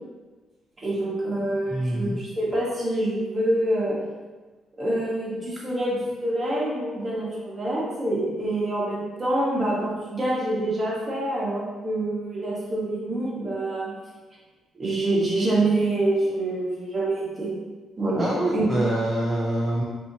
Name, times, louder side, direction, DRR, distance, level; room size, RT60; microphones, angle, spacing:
voice 1, 0.8-4.0 4.8-13.9 14.7-17.5 18.0-18.2 18.5-18.6, right 1 dB, 30° right, -5 dB, 1.3 m, -26 dB
voice 2, 1.7-2.2 18.2-19.8, right 1 dB, 10° right, -5 dB, 0.5 m, -25 dB
4.3 x 2.8 x 2.8 m, 1.3 s
cardioid pair, 90°, 0 cm